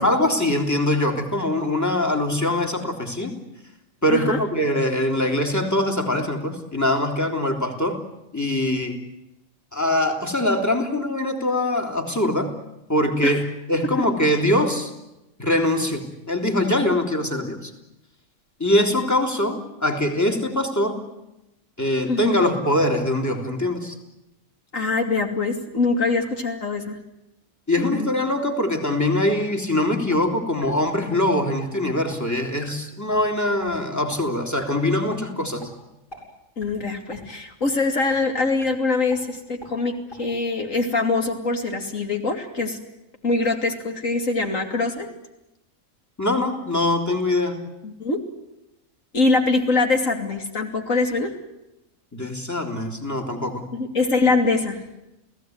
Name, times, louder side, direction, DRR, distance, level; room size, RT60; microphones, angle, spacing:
voice 1, 0.0-3.3 4.0-8.0 8.3-9.0 9.7-12.5 12.9-13.4 13.7-14.9 15.4-17.7 18.6-21.0 21.8-23.9 27.7-35.7 46.2-47.6 52.1-53.7, left 1 dB, 15° left, 5 dB, 3.4 m, -23 dB
voice 2, 4.1-4.4 13.2-13.4 22.1-22.4 24.7-27.0 27.8-28.1 36.6-42.8 43.2-45.1 47.8-48.2 49.1-51.3 53.7-54.8, left 3 dB, 85° left, 4 dB, 3.3 m, -23 dB
sound 1, 30.1-30.3 30.6-30.7 31.1-31.2 31.6-31.7 32.1-32.2 32.6-32.7 33.1-33.3 33.6-33.8 34.1-34.2 34.6-34.7 35.1-35.2 35.6-35.7 36.1-36.2 36.6-36.8 37.1-37.2 37.6-37.7 38.1-38.2 38.6-38.7 39.1-39.2 39.6-39.7 40.1-40.2, equal, 40° left, 8.1 m, -41 dB
29.5 x 17.5 x 9.5 m, 0.90 s
omnidirectional pair, 1.3 m